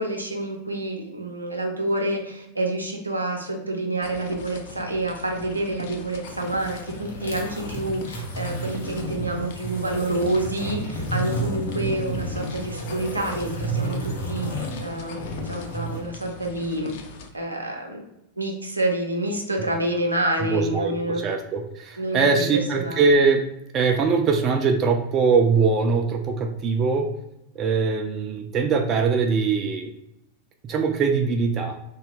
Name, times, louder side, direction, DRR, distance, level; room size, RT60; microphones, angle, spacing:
voice 1, 0.0-6.9 7.2-16.9 17.3-18.0 18.4-21.2 22.0-22.5 22.7-23.0, right 1 dB, 85° right, 1 dB, 0.6 m, -28 dB
sound 1, 4.0-17.3, left 4 dB, 50° left, 0.4 m, -42 dB
sound 2, 6.1-16.0, right 1 dB, 70° left, 0.8 m, -31 dB
voice 2, 20.4-23.4 23.7-27.1 27.6-29.9 30.6-31.8, right 4 dB, 30° right, 4 dB, 0.3 m, -22 dB
2.6 x 2.2 x 3.1 m, 0.86 s
figure-of-eight pair, 90°, 0 cm